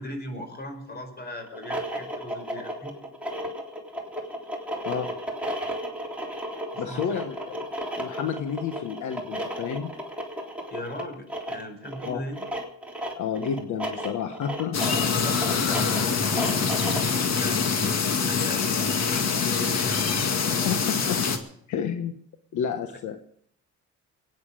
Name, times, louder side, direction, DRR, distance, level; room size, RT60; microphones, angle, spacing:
voice 1, 0.0-2.9 6.7-7.2 10.7-12.4 15.2-20.3, left 1 dB, 35° left, 6 dB, 5.0 m, -39 dB
sound 1, 1.5-17.2, equal, 5° right, 3.6 m, -34 dB
voice 2, 6.8-7.5 8.0-10.0 12.1-12.2 13.2-14.8 20.5-21.2 21.7-22.2 22.5-23.2, left 7 dB, 75° left, 7 dB, 1.3 m, -30 dB
sound 2, 14.7-21.4, left 5 dB, 60° left, 2.0 m, -25 dB
22.5 x 9.6 x 5.0 m, 0.67 s
cardioid pair, 90°, 30 cm